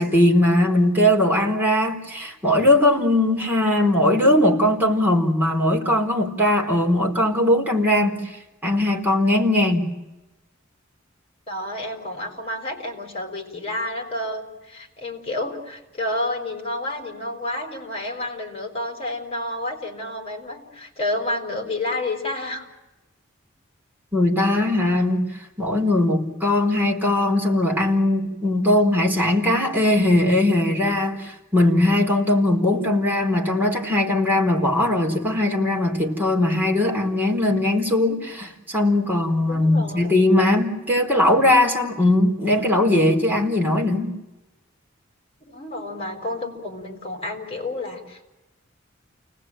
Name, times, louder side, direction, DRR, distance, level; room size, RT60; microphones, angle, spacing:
voice 1, 0.0-8.3 8.6-9.9 24.1-25.3 25.6-44.2, left 1 dB, 10° right, 4.4 m, -20 dB
voice 2, 11.5-22.7 39.5-40.1 45.5-48.3, left 1 dB, 30° left, 5.8 m, -30 dB
30.0 x 20.0 x 9.2 m
head